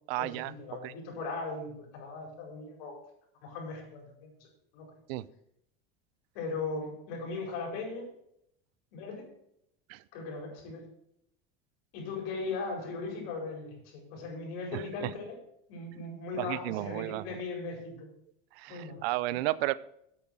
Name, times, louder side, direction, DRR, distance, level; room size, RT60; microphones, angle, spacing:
voice 1, 0.1-0.5 0.8-0.9 1.5-1.6 5.1-5.2 9.9-10.0 14.7-15.1 16.4-17.4 18.5-19.7, right 18 dB, 75° right, 19 dB, 0.6 m, -33 dB
voice 2, 0.7-3.0 3.4-4.5 4.7-4.9 6.3-8.1 8.9-9.3 10.1-10.8 11.9-15.4 15.7-18.0 18.7-19.0 19.4-19.5, left 3 dB, 75° left, 0 dB, 5.0 m, -38 dB
8.9 x 8.5 x 6.1 m, 0.75 s
supercardioid pair, 130°, 30 cm